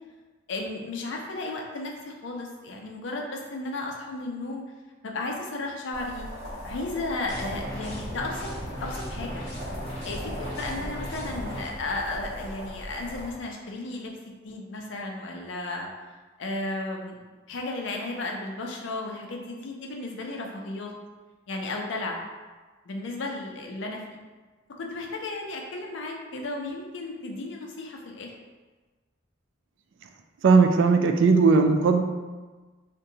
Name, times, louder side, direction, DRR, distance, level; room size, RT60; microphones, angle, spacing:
voice 1, 0.5-4.6 5.0-6.3 6.6-8.5 8.8-9.4 10.0-15.9 16.4-17.2 17.5-20.9 21.5-22.2 22.8-24.0 24.8-28.3, left 2 dB, 80° left, 1 dB, 0.5 m, -34 dB
sound 1, 5.9-13.3, equal, 30° right, 1.2 m, -39 dB
sound 2, 7.3-11.7, equal, 30° left, 0.9 m, -37 dB
voice 2, 30.4-32.0, right 4 dB, 80° right, 5 dB, 0.3 m, -18 dB
2.7 x 2.2 x 3.8 m, 1.3 s
head